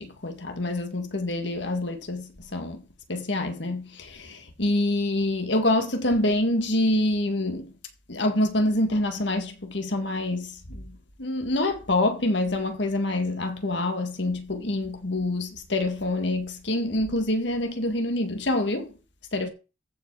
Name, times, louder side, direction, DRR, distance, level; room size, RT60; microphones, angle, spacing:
voice 1, 0.0-2.8 3.1-7.7 8.1-18.9 19.3-19.5, left 1 dB, 70° left, 1.8 m, -26 dB
14.5 x 5.1 x 4.8 m
head